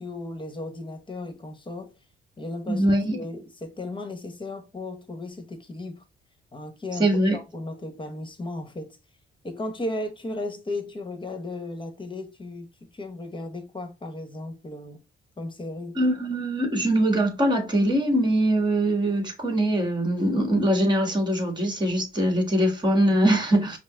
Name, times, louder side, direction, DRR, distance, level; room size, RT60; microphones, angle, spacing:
voice 1, 0.0-1.9 2.4-6.0 6.5-9.0 9.4-15.0 15.4-16.0, left 2 dB, 25° left, 1.1 m, -35 dB
voice 2, 2.7-3.2 7.0-7.4 15.9-23.8, right 1 dB, 20° right, 1.5 m, -22 dB
5.3 x 2.0 x 3.7 m
cardioid pair, 90°, 20 cm